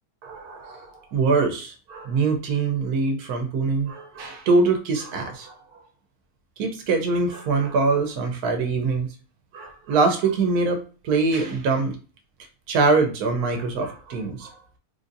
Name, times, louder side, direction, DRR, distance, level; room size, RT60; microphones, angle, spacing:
voice 1, 0.2-5.5 6.6-9.1 9.5-10.8 11.0-12.0 12.7-14.5, right 4 dB, 80° right, 5 dB, 1.2 m, -23 dB
3.4 x 2.6 x 2.5 m, 0.36 s
omnidirectional pair, 1.6 m